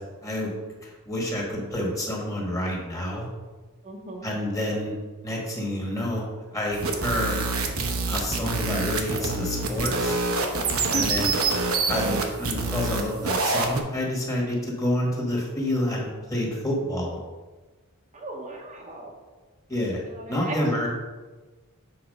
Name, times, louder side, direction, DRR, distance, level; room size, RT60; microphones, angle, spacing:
voice 1, 0.2-0.5 0.8-3.3 4.2-5.0 5.2-6.2 6.5-7.4 8.1-10.2 10.9-11.3 11.9-17.2 19.7-20.0 20.3-20.9, left 1 dB, 15° left, -2 dB, 1.6 m, -28 dB
voice 2, 3.8-4.3 10.9-11.1 18.1-19.1 20.1-20.9, right 2 dB, 35° right, -1 dB, 0.9 m, -35 dB
sound 1, 6.7-13.8, right 3 dB, 70° right, 0.9 m, -26 dB
7.2 x 4.1 x 5.4 m, 1.3 s
head